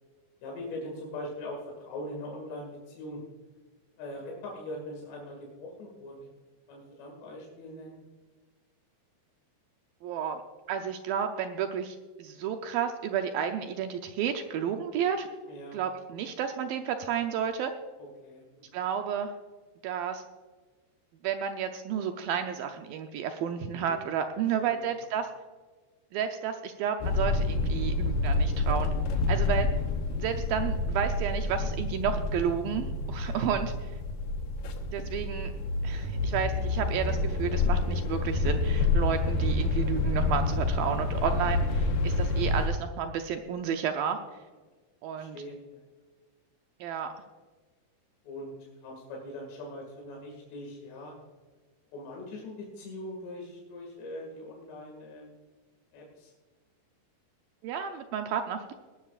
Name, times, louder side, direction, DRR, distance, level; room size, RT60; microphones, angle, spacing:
voice 1, 0.4-3.2 4.0-6.3 6.7-8.0 15.5-15.8 18.0-18.8 23.7-24.0 24.6-24.8 29.3-29.5 33.2-33.7 45.2-45.8 48.2-51.1 51.9-55.4 55.9-56.3, left 1 dB, 90° left, -1 dB, 4.3 m, -42 dB
voice 2, 10.0-10.4 10.7-15.3 15.7-17.7 18.7-19.3 19.8-20.2 21.2-25.3 26.1-28.9 29.3-29.7 30.1-34.0 34.9-35.5 35.8-44.2 45.0-45.4 46.8-47.1 57.6-58.7, right 8 dB, 80° right, 6 dB, 2.1 m, -31 dB
sound 1, 27.0-42.7, left 2 dB, 70° left, 2.5 m, -28 dB
19.5 x 12.0 x 2.4 m, 1.4 s
omnidirectional pair, 4.8 m